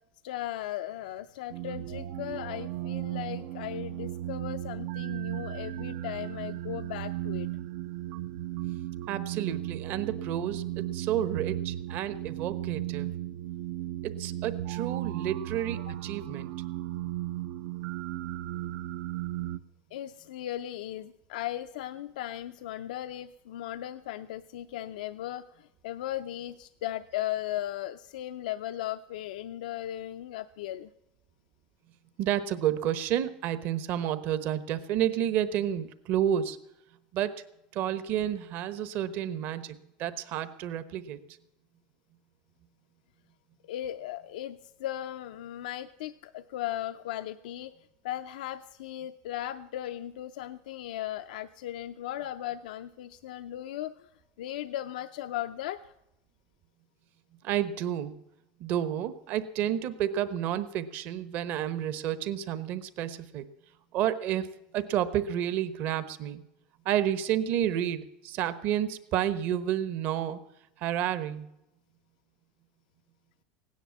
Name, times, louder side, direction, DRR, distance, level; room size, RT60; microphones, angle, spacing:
voice 1, 0.2-7.5 15.9-16.0 19.9-30.9 43.6-47.7 48.0-54.1 54.4-55.9, left 13 dB, 90° left, 9 dB, 0.5 m, -37 dB
sound 1, 1.5-19.6, right 14 dB, 65° right, 0.6 m, -35 dB
voice 2, 9.1-13.1 14.0-16.5 32.2-36.6 37.1-37.4 37.7-41.2 57.4-58.2 58.6-63.5 63.9-64.5 64.7-66.4 66.8-70.4 70.8-71.4, right 10 dB, 50° right, 12 dB, 1.1 m, -30 dB
16.5 x 10.0 x 7.2 m, 0.86 s
supercardioid pair, 140°, 4 cm